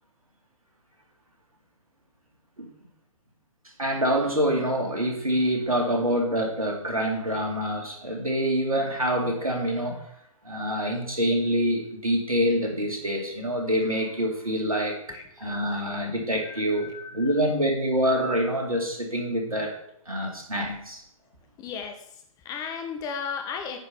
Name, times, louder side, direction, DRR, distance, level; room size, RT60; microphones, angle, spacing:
voice 1, 3.8-10.0 10.4-21.0, equal, 85° right, 1 dB, 2.6 m, -26 dB
voice 2, 16.4-17.4 21.6-23.8, left 6 dB, 20° left, 6 dB, 1.3 m, -35 dB
9.4 x 5.2 x 5.6 m, 0.71 s
figure-of-eight pair, 125°, 18 cm